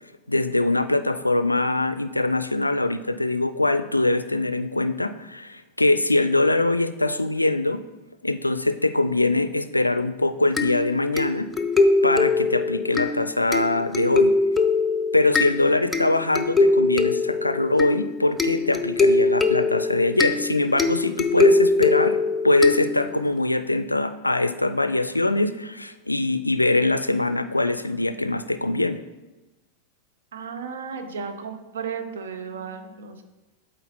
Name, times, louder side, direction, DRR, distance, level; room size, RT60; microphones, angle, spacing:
voice 1, 0.3-7.8 8.2-11.5 12.0-14.3 15.1-29.0, left 2 dB, 85° left, 12 dB, 0.3 m, -23 dB
sound 1, 10.6-23.3, left 3 dB, 10° left, 0.5 m, -22 dB
voice 2, 30.3-33.2, right 6 dB, 65° right, 7 dB, 0.7 m, -34 dB
8.0 x 3.8 x 4.1 m, 1.1 s
figure-of-eight pair, 90°, 0 cm